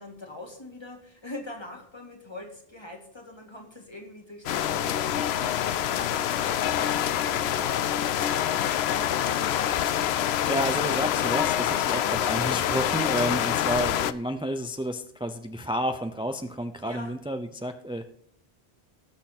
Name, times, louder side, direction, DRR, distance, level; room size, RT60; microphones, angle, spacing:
voice 1, 0.0-9.3 16.8-17.1, left 1 dB, 25° left, 2 dB, 2.0 m, -43 dB
sound 1, 4.5-14.1, left 10 dB, 80° left, 0.8 m, -26 dB
voice 2, 10.4-18.1, equal, 10° right, 8 dB, 0.3 m, -30 dB
18.5 x 6.6 x 4.1 m, 0.66 s
omnidirectional pair, 1.1 m